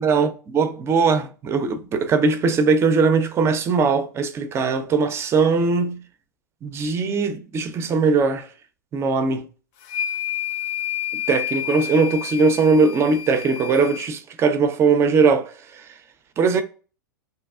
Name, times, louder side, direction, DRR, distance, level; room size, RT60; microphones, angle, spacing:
voice 1, 0.0-6.0 6.6-8.5 8.9-9.5 11.1-16.0 16.4-16.6, right 4 dB, 25° right, 0.4 m, -20 dB
sound 1, 9.8-14.1, left 10 dB, 45° left, 0.4 m, -30 dB
2.9 x 2.3 x 2.3 m
figure-of-eight pair, 95°, 11 cm